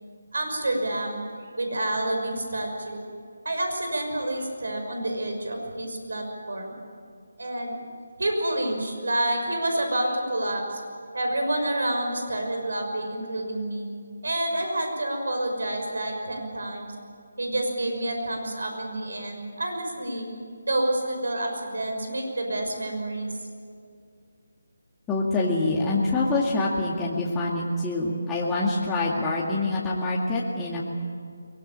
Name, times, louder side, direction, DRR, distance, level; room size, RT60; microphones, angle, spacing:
voice 1, 0.3-1.2 1.6-3.1 3.4-6.7 7.4-7.7 8.2-10.8 11.1-13.9 14.2-16.9 17.4-20.3 20.6-23.3, right 1 dB, 75° right, 3 dB, 6.0 m, -28 dB
voice 2, 25.1-30.8, left 2 dB, 10° left, -6 dB, 2.2 m, -25 dB
23.0 x 20.0 x 8.8 m, 2.3 s
figure-of-eight pair, 160°, 0 cm